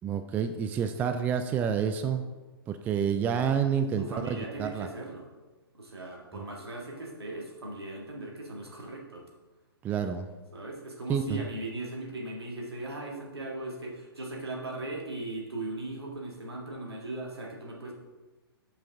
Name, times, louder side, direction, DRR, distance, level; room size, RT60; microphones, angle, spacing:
voice 1, 0.0-2.3 2.7-4.9 6.3-6.4 9.8-10.3 11.1-11.4, right 7 dB, 15° right, 8 dB, 0.3 m, -29 dB
voice 2, 4.0-5.2 5.7-9.3 10.5-17.9, right 2 dB, 80° right, -1 dB, 1.9 m, -38 dB
7.5 x 5.5 x 3.6 m, 1.2 s
figure-of-eight pair, 120°, 13 cm